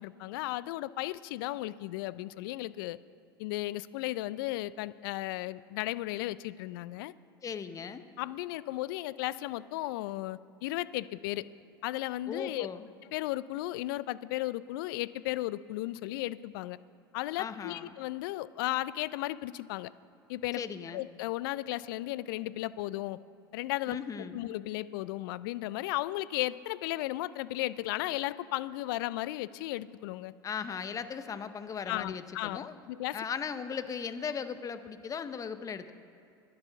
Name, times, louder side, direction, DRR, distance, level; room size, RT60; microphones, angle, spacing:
voice 1, 0.0-3.0 3.4-7.1 8.2-11.4 11.8-12.7 13.1-16.8 17.1-19.9 20.3-20.6 20.9-23.2 23.5-24.0 24.3-30.3 31.9-33.2, left 17 dB, 60° left, 18 dB, 0.4 m, -35 dB
voice 2, 7.4-8.0 12.3-12.9 17.4-17.9 20.5-21.0 23.9-24.4 30.4-32.7 33.1-35.9, left 6 dB, 25° left, 11 dB, 0.7 m, -37 dB
10.5 x 9.6 x 5.8 m, 2.7 s
hypercardioid pair, 80°, 13 cm